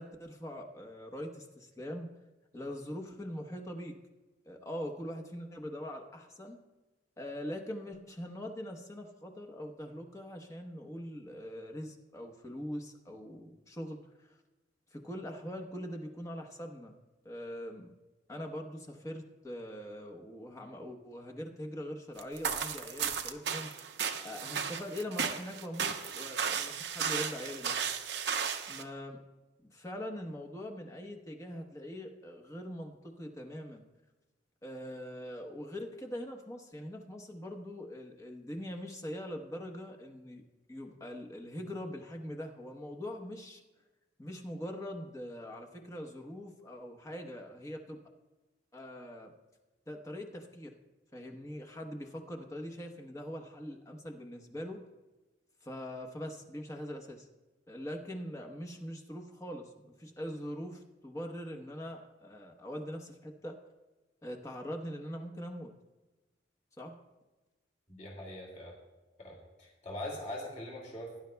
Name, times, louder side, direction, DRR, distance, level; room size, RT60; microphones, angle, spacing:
voice 1, 0.0-2.1 2.5-3.9 4.5-6.6 7.2-14.4 14.9-17.0 17.2-17.9 18.3-23.7 24.2-27.8 28.7-29.2 29.6-33.8 34.6-40.4 40.7-43.6 44.2-48.0 48.7-49.3 49.9-50.7 51.1-54.8 55.6-57.3 57.7-63.6 64.2-65.7 66.8-67.0, equal, 15° left, 2 dB, 1.0 m, -42 dB
sound 1, 22.2-28.8, right 7 dB, 65° right, 0.8 m, -35 dB
voice 2, 67.9-68.7 69.2-71.2, left 1 dB, 40° left, -2 dB, 2.4 m, -42 dB
18.0 x 10.5 x 2.3 m, 1.1 s
head